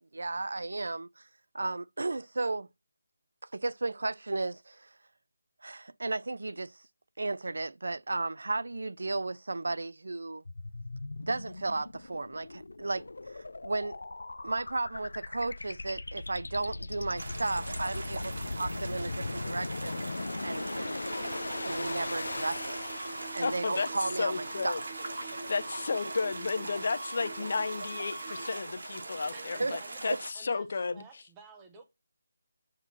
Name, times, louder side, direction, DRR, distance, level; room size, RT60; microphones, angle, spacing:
voice 1, 0.1-1.2 1.5-2.7 3.5-4.9 5.6-6.8 7.2-10.4 11.3-14.0 14.4-20.0 20.4-21.0 21.6-22.8 23.3-24.8 29.6-29.7 30.1-30.2, right 2 dB, 75° right, 0.3 m, -34 dB
sound 1, 10.5-23.9, left 2 dB, 85° left, 0.4 m, -39 dB
sound 2, 17.2-30.3, right 2 dB, 60° right, 1.5 m, -42 dB
sound 3, 21.0-28.6, right 2 dB, 40° right, 1.2 m, -43 dB
voice 2, 23.4-23.9 24.2-24.8 25.2-31.2, left 4 dB, 40° left, 0.6 m, -33 dB
voice 3, 29.3-30.7 30.9-31.8, right 5 dB, 10° right, 0.7 m, -52 dB
7.3 x 2.9 x 5.9 m
figure-of-eight pair, 180°, 0 cm